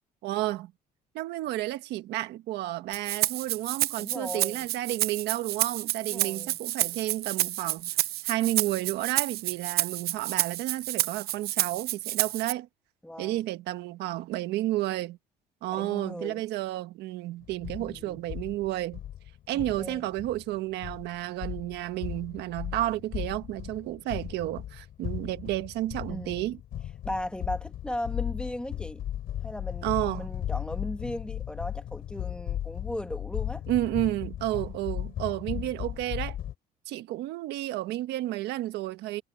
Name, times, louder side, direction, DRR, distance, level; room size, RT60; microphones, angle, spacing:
voice 1, 0.2-0.7 1.1-7.9 8.2-12.7 13.2-15.2 15.6-19.0 19.5-26.6 29.8-30.3 33.7-36.4 36.9-39.2, right 16 dB, 85° right, 1.5 m, -31 dB
Rattle (instrument), 2.9-12.5, right 15 dB, 65° right, 0.6 m, -30 dB
voice 2, 4.0-4.6 6.0-6.6 13.0-13.4 15.7-16.4 17.8-18.2 19.5-20.1 26.1-26.4 27.0-29.0 29.4-33.6 35.5-35.7, left 1 dB, 5° left, 1.7 m, -37 dB
sound 1, 17.4-36.5, left 11 dB, 65° left, 3.0 m, -36 dB
cardioid pair, 110°, 17 cm